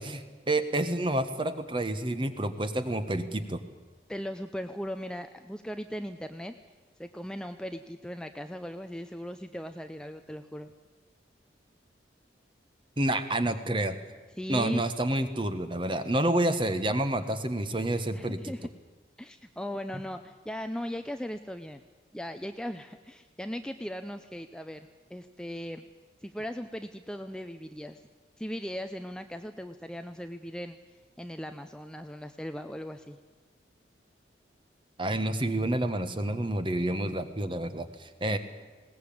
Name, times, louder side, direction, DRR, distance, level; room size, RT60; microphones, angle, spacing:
voice 1, 0.0-3.6 13.0-14.0 14.5-18.5 35.0-38.4, right 1 dB, 25° right, 10 dB, 1.3 m, -29 dB
voice 2, 4.1-6.6 7.0-10.7 14.4-14.8 18.1-18.7 19.2-21.8 22.1-25.9 26.2-28.0 28.4-30.8 31.2-33.2, equal, 5° left, 7 dB, 0.6 m, -38 dB
20.5 x 18.0 x 8.7 m, 1.3 s
head